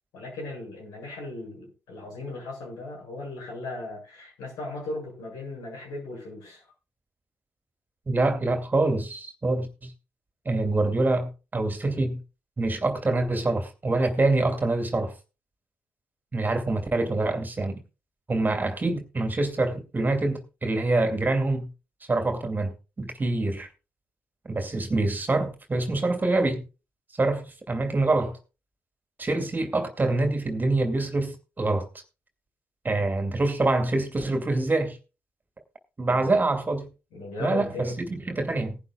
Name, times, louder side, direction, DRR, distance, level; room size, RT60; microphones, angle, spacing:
voice 1, 0.1-6.6 36.1-36.4 37.1-38.0, left 2 dB, 70° left, 6.8 m, -37 dB
voice 2, 8.1-9.9 10.4-12.2 12.6-15.1 16.3-17.8 18.3-21.7 22.1-23.7 24.5-26.6 27.2-28.4 29.2-31.9 32.8-35.0 36.0-36.9 37.4-38.8, right 2 dB, 30° right, 2.6 m, -25 dB
19.5 x 11.0 x 2.4 m
figure-of-eight pair, 40°, 7 cm